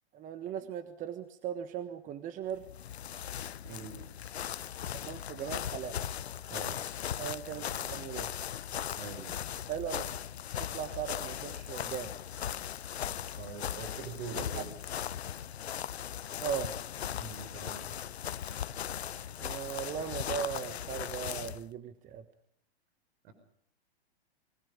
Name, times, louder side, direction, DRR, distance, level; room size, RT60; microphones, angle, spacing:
voice 1, 0.1-2.6 5.0-6.0 7.2-8.3 9.7-10.2 10.6-12.1 14.5-14.6 16.4-16.7 19.4-22.2, right 9 dB, 25° right, 10 dB, 1.3 m, -38 dB
sound 1, 2.6-21.6, left 10 dB, 80° left, 1.0 m, -38 dB
voice 2, 3.6-4.1 6.5-6.9 7.5-8.0 9.0-9.4 13.4-14.7 17.2-18.0 23.2-23.3, right 5 dB, 55° right, 9 dB, 5.4 m, -44 dB
28.0 x 24.0 x 5.2 m, 0.66 s
hypercardioid pair, 130°, 32 cm